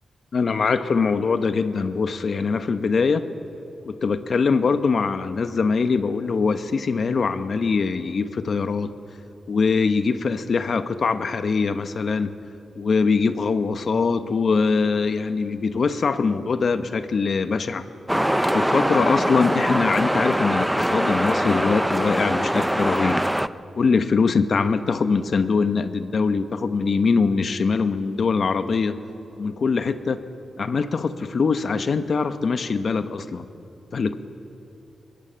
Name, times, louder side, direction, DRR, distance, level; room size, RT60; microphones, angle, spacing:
voice 1, 0.3-3.2 3.9-8.9 9.5-12.3 12.8-17.8 18.5-23.2 23.7-29.0 29.4-30.2 30.6-33.5 33.9-34.2, left 4 dB, 45° left, 10 dB, 1.0 m, -22 dB
sound 1, 18.1-23.5, equal, 5° right, 0.4 m, -22 dB
22.0 x 18.5 x 8.8 m, 2.8 s
wide cardioid pair, 155°, 0 cm